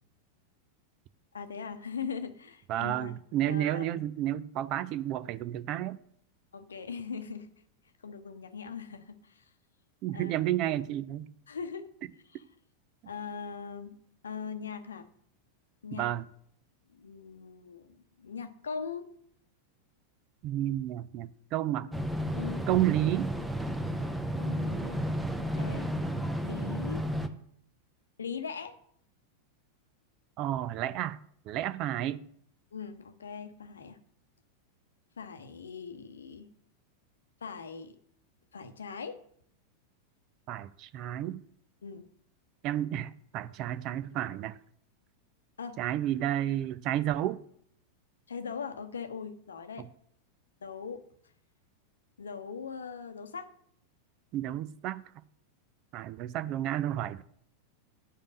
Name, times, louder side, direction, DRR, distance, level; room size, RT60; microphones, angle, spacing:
voice 1, 1.3-3.2 3.5-3.9 6.5-7.5 8.0-9.4 10.1-10.5 11.5-11.9 12.3-12.4 13.1-14.0 14.2-15.1 15.8-16.1 16.9-19.1 22.3-22.7 24.4-25.1 25.4-25.9 26.4-27.1 28.2-28.8 32.7-34.0 35.2-36.5 37.4-38.0 38.5-39.2 41.8-42.1 45.6-45.8 48.3-49.9 50.6-51.0 52.2-53.5, left 6 dB, 70° left, 0.8 m, -40 dB
voice 2, 2.7-6.0 10.0-11.3 15.9-16.3 20.4-21.9 22.7-23.3 30.4-31.2 31.5-32.2 40.5-41.4 42.6-44.6 45.8-47.4 49.8-49.9 54.3-55.0 55.9-57.2, right 12 dB, 40° right, 0.5 m, -31 dB
sound 1, 21.9-27.3, equal, 5° right, 0.8 m, -32 dB
10.0 x 5.2 x 6.4 m
figure-of-eight pair, 90°, 0 cm